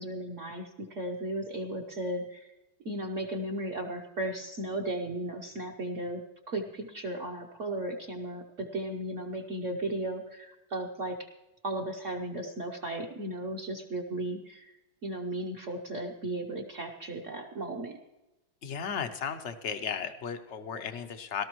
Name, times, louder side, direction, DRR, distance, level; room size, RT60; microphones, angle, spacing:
voice 1, 0.0-2.5 2.8-6.2 6.5-11.3 11.6-14.7 15.0-18.0, right 1 dB, 50° right, 1 dB, 1.0 m, -35 dB
voice 2, 18.6-21.4, left 7 dB, 65° left, 8 dB, 0.7 m, -35 dB
18.0 x 13.0 x 3.0 m, 1.0 s
omnidirectional pair, 2.2 m